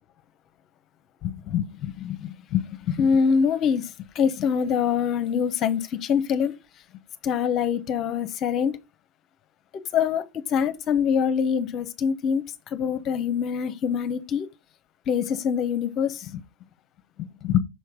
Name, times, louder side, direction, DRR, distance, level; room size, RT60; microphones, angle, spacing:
voice 1, 1.2-6.5 7.2-8.8 9.9-14.5 15.1-16.4 17.4-17.6, left 7 dB, 35° left, 0.8 m, -25 dB
6.4 x 3.2 x 5.1 m
supercardioid pair, 125°, 0 cm